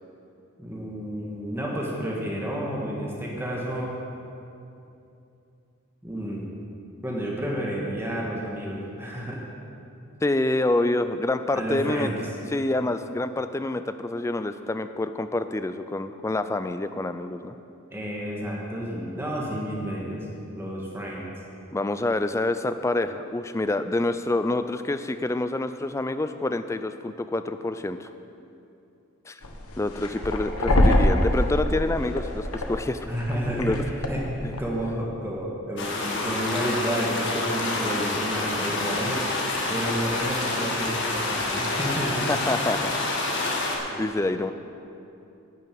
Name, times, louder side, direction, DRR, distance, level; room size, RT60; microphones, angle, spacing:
voice 1, 0.6-3.9 6.0-6.5 7.0-9.4 11.5-12.2 17.9-20.2 20.5-21.3 33.1-33.8 34.1-34.2 34.6-39.2 39.7-42.3 43.9-44.0, equal, 10° right, -4 dB, 1.5 m, -30 dB
voice 2, 10.2-12.1 12.5-17.6 21.7-28.1 29.3-29.4 29.8-33.0 33.6-33.8 34.4-34.6 37.9-38.0 42.1-42.9 43.4-44.5, left 2 dB, 15° left, 10 dB, 0.3 m, -27 dB
sound 1, 29.4-34.8, left 1 dB, 85° left, 1.2 m, -25 dB
sound 2, 35.8-43.8, left 2 dB, 55° left, 1.7 m, -28 dB
10.5 x 6.8 x 8.6 m, 2.7 s
head